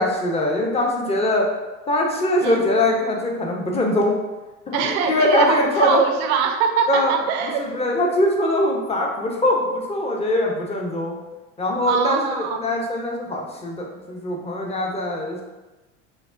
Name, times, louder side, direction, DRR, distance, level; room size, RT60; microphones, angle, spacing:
voice 1, 0.0-1.5 1.9-4.2 4.7-6.0 6.9-7.1 7.6-11.1 11.6-15.4, left 1 dB, 15° left, -1 dB, 0.8 m, -22 dB
voice 2, 4.7-7.7 11.8-12.7, right 6 dB, 60° right, 6 dB, 0.6 m, -23 dB
5.1 x 2.1 x 2.5 m, 1.1 s
hypercardioid pair, 75°, 37 cm